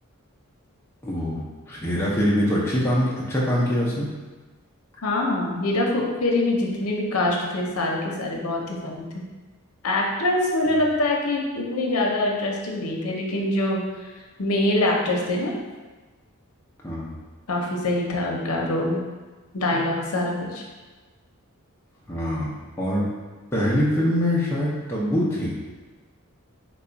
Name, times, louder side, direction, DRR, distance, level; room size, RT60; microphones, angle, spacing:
voice 1, 1.0-4.1 16.8-17.2 22.1-23.1 23.5-25.5, equal, 10° left, -6 dB, 0.4 m, -24 dB
voice 2, 5.0-9.2 9.8-13.8 14.4-15.5 17.5-19.0 19.5-20.6, left 1 dB, 75° left, -1 dB, 0.6 m, -24 dB
3.2 x 2.3 x 3.8 m, 1.3 s
head